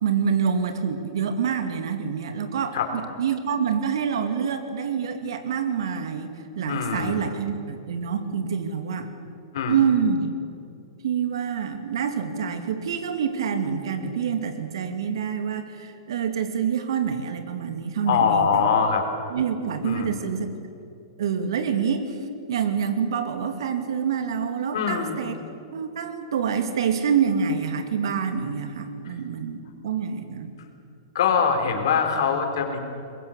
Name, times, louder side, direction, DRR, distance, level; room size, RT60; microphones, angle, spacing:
voice 1, 0.0-9.1 9.7-10.4 11.0-18.7 19.3-20.5 21.2-22.2 22.5-25.4 25.7-30.5, right 7 dB, 70° right, 7 dB, 2.5 m, -26 dB
voice 2, 6.7-7.2 9.5-9.7 18.1-19.0 19.8-20.1 24.7-25.2 31.1-32.8, left 6 dB, 65° left, 4 dB, 4.1 m, -23 dB
23.5 x 21.5 x 7.2 m, 2.6 s
hypercardioid pair, 115°, 3 cm